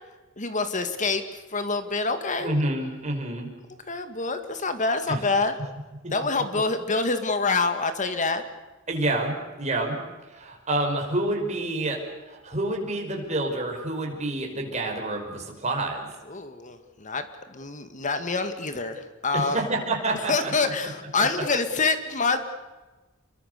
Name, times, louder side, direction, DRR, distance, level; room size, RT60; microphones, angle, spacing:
voice 1, 0.4-2.5 3.9-5.6 6.1-8.4 16.3-17.2 17.5-19.6 20.3-22.4, left 3 dB, 40° left, 8 dB, 2.0 m, -26 dB
voice 2, 2.4-3.5 6.0-6.1 8.9-10.0 10.3-16.1 19.3-20.5 21.2-21.3, right 2 dB, 35° right, 1 dB, 5.4 m, -28 dB
27.5 x 23.0 x 6.8 m, 1.2 s
head